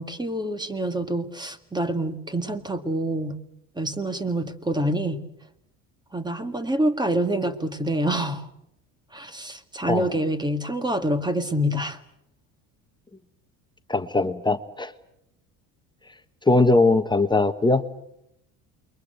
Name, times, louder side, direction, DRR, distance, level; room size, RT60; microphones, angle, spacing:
voice 1, 0.0-3.3 3.8-5.2 6.1-8.4 9.1-12.0, right 1 dB, 10° right, 11 dB, 1.9 m, -26 dB
voice 2, 13.9-14.9 16.5-17.8, left 2 dB, 10° left, 8 dB, 1.1 m, -20 dB
28.5 x 22.5 x 8.0 m, 0.77 s
cardioid pair, 110°, 38 cm